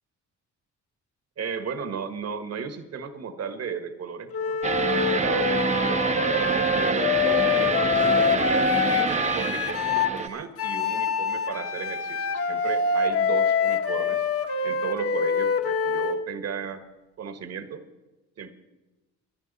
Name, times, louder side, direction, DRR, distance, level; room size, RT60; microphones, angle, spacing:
voice 1, 1.4-4.6 4.9-8.7 9.0-14.2 14.6-16.8 17.2-17.8 18.4-18.5, right 6 dB, 55° right, 9 dB, 1.5 m, -35 dB
Wind instrument woodwind instrument, 4.3-10.2 10.6-16.2, left 5 dB, 50° left, 1.2 m, -25 dB
sound 1, 4.6-10.3, right 4 dB, 25° right, 0.7 m, -26 dB
23.5 x 10.5 x 4.1 m, 1.1 s
cardioid pair, 90°, 30 cm